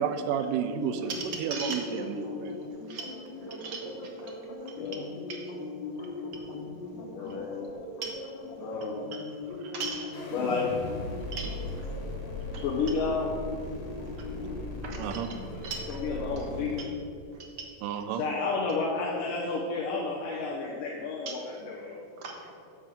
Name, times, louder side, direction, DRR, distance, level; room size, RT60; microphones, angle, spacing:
voice 1, 0.0-1.1 1.4-2.6 15.0-15.3 17.8-18.2, right 8 dB, 80° right, 9 dB, 2.1 m, -31 dB
sound 1, 0.5-16.7, left 3 dB, 60° left, 2.7 m, -41 dB
voice 2, 1.0-2.0 2.9-3.1 3.3-3.9 4.3-4.4 5.3-5.4 7.2-7.4 8.0-8.2 9.1-9.2 9.5-10.1 11.3-11.6 12.5-12.6 14.3-15.4 15.6-16.0 16.4-16.5 17.6-17.7 21.3-21.4 22.2-22.5, right 4 dB, 55° right, 0 dB, 1.8 m, -39 dB
voice 3, 4.7-5.1 7.1-7.7 8.6-9.1 10.3-10.8 12.6-13.3 15.5-17.0 18.0-22.0, left 4 dB, 80° left, -4 dB, 2.7 m, -31 dB
sound 2, 10.1-16.8, left 2 dB, 45° left, 2.3 m, -38 dB
10.5 x 7.4 x 5.3 m, 2.6 s
omnidirectional pair, 3.9 m